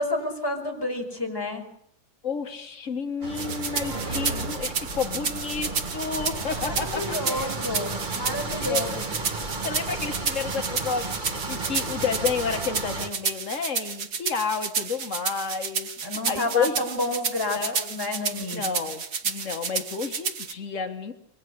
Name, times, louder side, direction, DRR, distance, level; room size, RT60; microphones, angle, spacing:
voice 1, 0.0-1.6 3.8-4.2 6.7-9.0 16.0-18.9, left 1 dB, 5° left, 3 dB, 5.0 m, -30 dB
voice 2, 2.2-7.5 8.6-9.0 9.6-16.8 17.5-17.8 18.5-21.1, left 5 dB, 85° left, 6 dB, 0.6 m, -31 dB
sound 1, 3.2-13.1, right 2 dB, 80° right, 0.4 m, -33 dB
sound 2, 3.3-20.5, right 6 dB, 45° right, 1.3 m, -31 dB
sound 3, 4.7-9.6, right 1 dB, 25° left, 8.3 m, -47 dB
26.0 x 23.5 x 6.6 m, 0.71 s
omnidirectional pair, 3.7 m